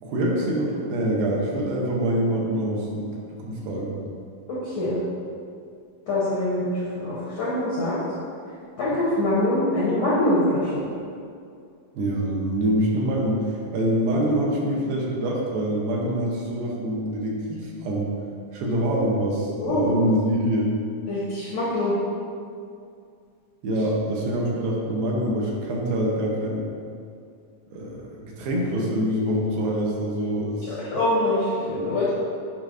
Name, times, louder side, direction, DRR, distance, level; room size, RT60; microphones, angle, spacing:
voice 1, 0.0-4.0 12.0-18.1 18.5-20.7 23.6-26.6 27.7-30.8, right 1 dB, 80° right, -2 dB, 2.7 m, -25 dB
voice 2, 4.5-5.0 6.1-8.0 8.8-10.7 19.6-19.9 21.1-21.9 30.7-32.1, left 1 dB, 70° left, -9 dB, 1.6 m, -24 dB
8.8 x 5.1 x 2.5 m, 2.4 s
omnidirectional pair, 4.3 m